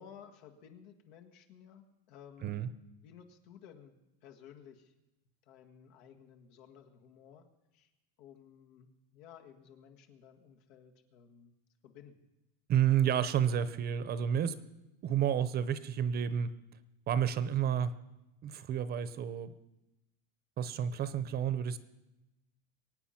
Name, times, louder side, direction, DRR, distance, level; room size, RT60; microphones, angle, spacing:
voice 1, 0.0-2.7 3.0-4.9 5.5-7.4 7.7-7.9 8.2-11.5 11.8-12.3, left 8 dB, 85° left, 4 dB, 2.0 m, -55 dB
voice 2, 12.7-14.6 15.0-16.5 17.1-17.9 18.4-19.5 20.6-21.8, right 9 dB, 30° right, 14 dB, 0.7 m, -30 dB
23.0 x 9.2 x 5.8 m, 0.97 s
cardioid pair, 150°, 30 cm